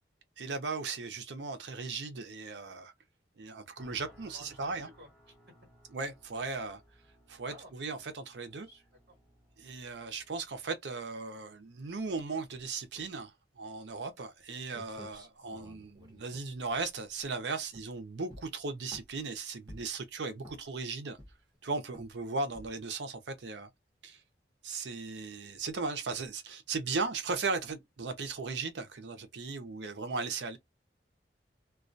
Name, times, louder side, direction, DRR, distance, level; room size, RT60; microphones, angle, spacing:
voice 1, 0.4-2.9 3.4-4.9 5.9-6.8 7.3-8.7 9.6-21.2 21.6-23.7 24.0-24.2 24.6-30.6, right 4 dB, 85° right, 0.6 m, -37 dB
sound 1, 3.8-10.6, equal, ahead, 1.1 m, -61 dB
voice 2, 4.3-5.3 7.5-7.9 8.6-8.8 30.1-30.2, right 1 dB, 65° right, 1.0 m, -54 dB
sound 2, 14.4-14.5 14.7-17.3 17.7-18.0 18.3-19.2 19.7-20.0 20.4-20.8 21.2-21.6 21.9-22.2 22.5-22.9, equal, 25° right, 0.9 m, -51 dB
2.3 x 2.2 x 2.5 m
head